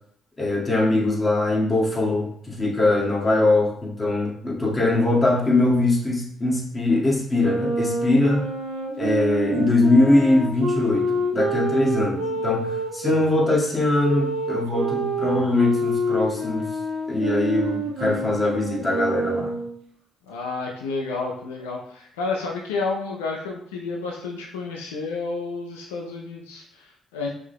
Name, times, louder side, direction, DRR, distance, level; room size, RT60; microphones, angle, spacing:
voice 1, 0.4-8.5 9.0-16.7 17.1-19.5, left 2 dB, 25° left, -4 dB, 1.8 m, -22 dB
Wind instrument woodwind instrument, 7.3-13.2 14.0-19.7, right 1 dB, 90° right, 0.9 m, -27 dB
voice 2, 11.5-12.4 20.3-27.3, left 3 dB, 90° left, -1 dB, 0.5 m, -31 dB
5.8 x 3.7 x 2.2 m, 0.66 s
hypercardioid pair, 50°, 0 cm